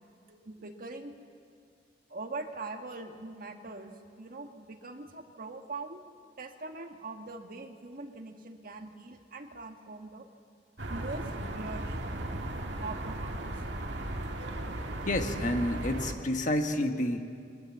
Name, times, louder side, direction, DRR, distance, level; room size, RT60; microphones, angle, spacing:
voice 1, 0.3-1.1 2.1-6.0 6.4-10.3 10.9-12.0 12.8-13.5, right 3 dB, 55° right, 4 dB, 1.5 m, -42 dB
sound 1, 10.8-16.1, right 1 dB, 75° right, 1.8 m, -36 dB
voice 2, 15.0-17.3, left 1 dB, 45° left, 6 dB, 1.4 m, -29 dB
22.5 x 18.5 x 7.4 m, 2.4 s
head